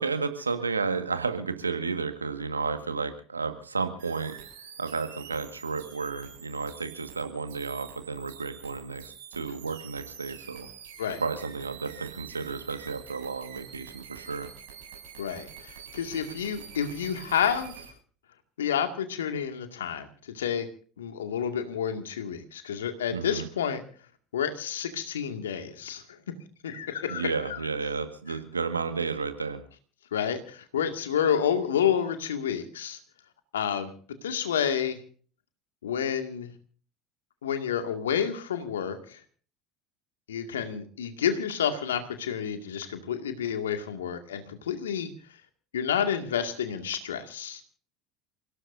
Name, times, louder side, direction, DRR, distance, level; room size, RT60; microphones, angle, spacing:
voice 1, 0.0-4.3 4.8-10.7 11.2-14.5 23.1-23.5 27.1-29.6, right 4 dB, 90° right, 8 dB, 1.7 m, -32 dB
sound 1, 4.0-17.9, right 8 dB, 65° right, 7.5 m, -47 dB
voice 2, 15.2-17.8 18.6-20.7 21.0-23.8 24.3-26.3 26.6-27.6 30.1-33.0 33.5-33.9 34.2-35.0 35.8-36.5 37.4-39.2 40.3-45.1 45.7-47.6, left 8 dB, 80° left, 6 dB, 2.2 m, -29 dB
28.5 x 17.5 x 2.7 m, 0.43 s
figure-of-eight pair, 70°, 0 cm